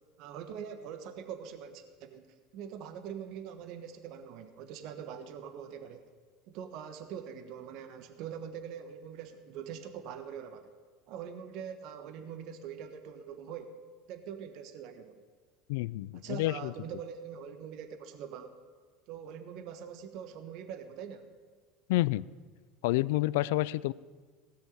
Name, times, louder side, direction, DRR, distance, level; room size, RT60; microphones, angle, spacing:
voice 1, 0.2-6.0 6.5-10.7 11.1-13.7 14.1-15.2 16.2-18.5 19.1-21.3, right 8 dB, 65° right, 7 dB, 1.3 m, -43 dB
voice 2, 15.7-16.7 21.9-22.3 22.8-23.9, left 17 dB, 75° left, 21 dB, 0.4 m, -29 dB
17.0 x 6.5 x 9.6 m, 1.5 s
hypercardioid pair, 90°, 0 cm